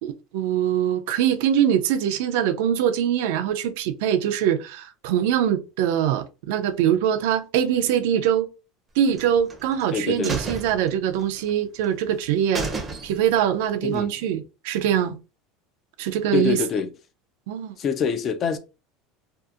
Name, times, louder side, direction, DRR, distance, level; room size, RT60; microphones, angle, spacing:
voice 1, 0.0-8.5 9.0-12.7 13.0-15.2 16.0-16.6 17.5-17.8, right 9 dB, 75° right, 0.4 m, -23 dB
sound 1, 9.1-9.8 10.2-11.5 11.8-11.9 12.2-12.3 12.5-13.4 13.8-13.9, right 3 dB, 15° right, 0.5 m, -32 dB
voice 2, 9.9-10.4 13.8-14.1 16.3-16.9 17.8-18.6, left 6 dB, 35° left, 0.3 m, -25 dB
2.6 x 2.4 x 2.4 m
supercardioid pair, 145°, 0 cm